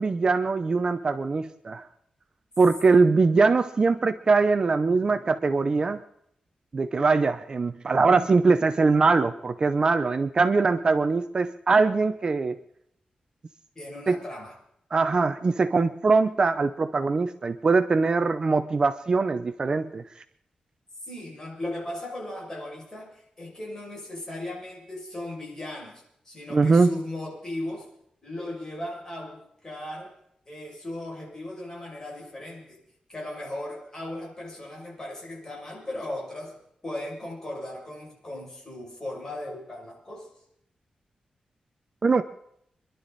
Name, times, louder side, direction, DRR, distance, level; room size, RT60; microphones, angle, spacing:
voice 1, 0.0-1.9 2.6-6.0 6.7-12.6 14.1-14.2 14.9-20.0 26.5-26.9 42.0-42.2, right 4 dB, 35° right, 10 dB, 0.6 m, -22 dB
voice 2, 13.7-14.6 21.0-27.9 28.2-30.1 30.5-32.8 33.1-36.6 36.8-40.3, left 1 dB, 25° left, -2 dB, 6.4 m, -37 dB
25.5 x 11.5 x 4.1 m, 0.72 s
wide cardioid pair, 155°, 2 cm